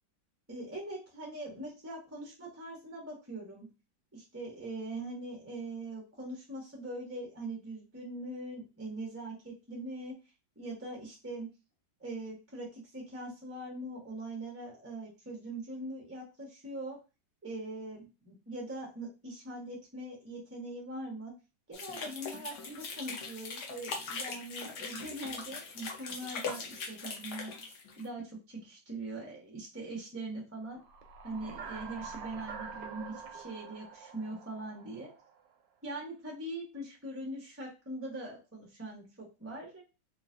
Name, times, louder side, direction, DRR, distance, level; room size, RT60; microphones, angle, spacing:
voice 1, 0.5-3.7 4.1-10.1 10.6-11.5 12.0-17.0 17.4-21.3 21.7-30.8 31.2-35.1 35.8-39.8, right 2 dB, 20° right, -2 dB, 0.4 m, -42 dB
sound 1, 21.7-28.1, left 5 dB, 65° left, 1.2 m, -41 dB
sound 2, 30.8-35.5, right 5 dB, 75° right, 1.2 m, -46 dB
3.8 x 2.5 x 2.5 m, 0.29 s
omnidirectional pair, 2.2 m